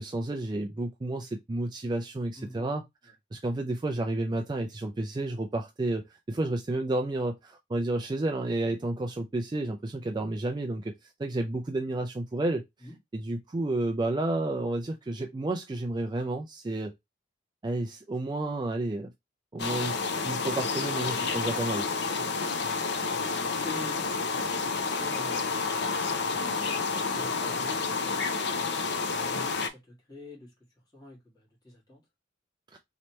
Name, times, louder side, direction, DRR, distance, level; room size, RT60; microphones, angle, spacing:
voice 1, 0.0-2.8 3.3-12.6 13.1-16.9 17.6-19.1 19.5-21.9, right 2 dB, 20° right, 0.4 m, -31 dB
voice 2, 2.3-2.7 3.0-3.1 12.8-12.9 22.1-22.6 23.6-24.4 24.8-28.8 29.1-30.5 30.9-32.0, left 1 dB, 20° left, 1.5 m, -47 dB
sound 1, 19.6-29.7, left 4 dB, 65° left, 0.6 m, -30 dB
3.1 x 2.9 x 4.2 m
head